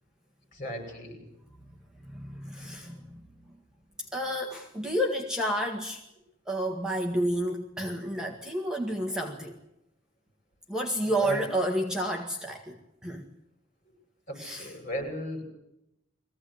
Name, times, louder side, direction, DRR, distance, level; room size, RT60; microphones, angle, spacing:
voice 1, 0.5-1.2 2.6-2.7 11.2-11.4 14.4-15.4, right 1 dB, 40° left, 3 dB, 7.9 m, -35 dB
voice 2, 2.0-3.3 4.0-6.0 6.5-9.6 10.7-13.3 14.3-14.8, equal, 5° right, 0 dB, 1.9 m, -31 dB
22.5 x 16.5 x 9.9 m, 0.83 s
head